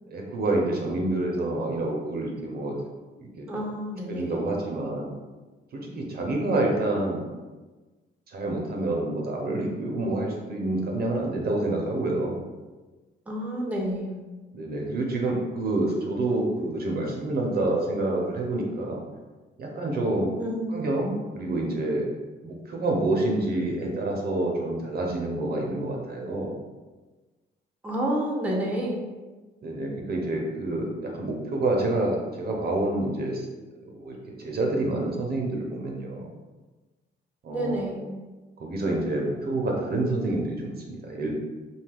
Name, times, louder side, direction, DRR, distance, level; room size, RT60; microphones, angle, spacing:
voice 1, 0.1-2.8 3.2-3.5 4.1-5.1 5.7-7.2 8.3-12.3 14.5-19.0 19.6-20.3 20.7-22.1 22.4-26.5 29.6-33.5 33.9-36.3 37.4-37.9 38.6-41.3, right 2 dB, 50° right, 0 dB, 0.6 m, -28 dB
voice 2, 3.5-4.3 13.3-14.1 20.4-20.9 27.8-29.0 37.5-38.0, right 1 dB, 5° right, -2 dB, 0.6 m, -29 dB
2.7 x 2.3 x 3.3 m, 1.3 s
cardioid pair, 90°, 20 cm